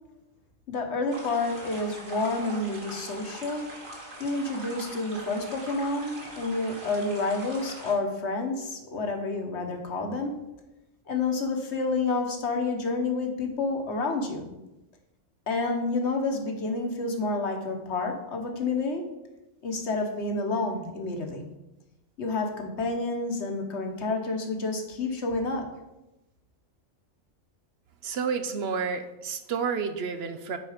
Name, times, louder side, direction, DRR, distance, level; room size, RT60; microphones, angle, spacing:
voice 1, 0.7-3.6 4.2-10.4 11.1-14.5 15.5-19.0 19.6-21.4 22.2-25.7, left 3 dB, 60° left, 3 dB, 1.3 m, -29 dB
sound 1, 1.1-7.9, right 1 dB, 40° right, 2.0 m, -42 dB
voice 2, 28.0-30.6, right 6 dB, 60° right, 9 dB, 0.8 m, -30 dB
9.4 x 4.4 x 5.0 m, 0.97 s
omnidirectional pair, 1.3 m